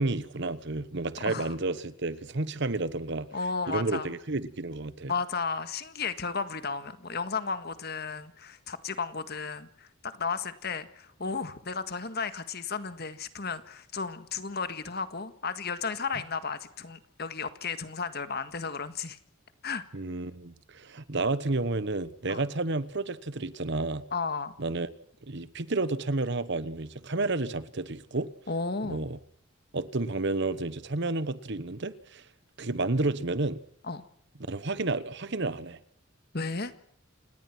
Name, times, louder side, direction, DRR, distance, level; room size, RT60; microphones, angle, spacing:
voice 1, 0.0-3.3 3.7-5.1 19.9-24.0 24.6-24.9 25.2-28.3 28.8-29.2 29.7-32.2 32.6-33.6 34.5-35.8, right 2 dB, 55° right, 1.1 m, -31 dB
voice 2, 1.2-1.6 3.3-4.1 5.1-19.2 19.6-19.8 22.3-22.4 24.1-24.6 28.5-29.1 33.8-34.0 36.3-36.7, left 4 dB, 50° left, 1.7 m, -34 dB
28.5 x 19.0 x 6.1 m
head